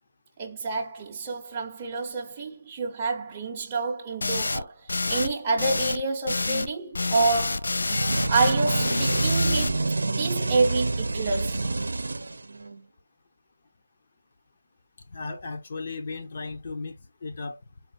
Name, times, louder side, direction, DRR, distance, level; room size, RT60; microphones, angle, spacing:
voice 1, 0.4-4.7 5.1-7.7 8.3-11.6, right 3 dB, 20° right, 0.7 m, -28 dB
sound 1, 4.2-4.6 4.9-5.3 5.6-6.0 6.3-6.7 6.9-9.7, left 3 dB, 70° left, 0.3 m, -28 dB
sound 2, 7.9-12.8, right 3 dB, 75° right, 0.6 m, -27 dB
voice 2, 15.1-16.9 17.2-17.6, left 3 dB, 40° left, 0.8 m, -35 dB
4.1 x 2.4 x 4.1 m
figure-of-eight pair, 165°, 0 cm